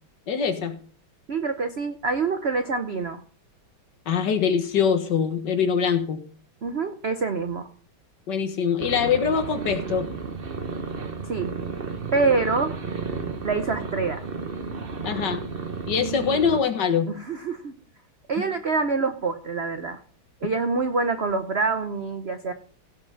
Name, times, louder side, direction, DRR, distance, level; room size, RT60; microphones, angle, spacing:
voice 1, 0.3-0.8 4.1-6.2 8.3-10.1 15.0-15.5 15.9-17.1, left 6 dB, 55° left, 9 dB, 1.8 m, -23 dB
voice 2, 1.3-3.2 6.6-7.7 11.3-11.5 12.1-12.7 13.4-14.3 16.0-16.5 17.1-17.7 18.3-20.0 20.4-22.5, right 4 dB, 60° right, 9 dB, 0.7 m, -26 dB
sound 1, 8.8-16.6, right 4 dB, 35° right, 1.1 m, -33 dB
16.5 x 5.8 x 5.6 m, 0.43 s
omnidirectional pair, 2.3 m